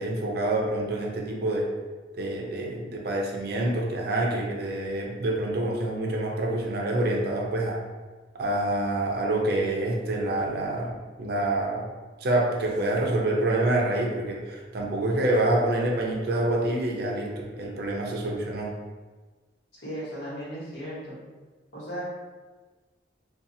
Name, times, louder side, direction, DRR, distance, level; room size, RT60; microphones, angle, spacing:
voice 1, 0.0-1.7 2.2-7.8 8.3-11.9 12.2-18.7, right 1 dB, 60° right, -1 dB, 0.5 m, -27 dB
voice 2, 19.7-21.2 21.7-22.0, equal, 75° left, -8 dB, 1.2 m, -36 dB
2.7 x 2.3 x 2.6 m, 1.3 s
head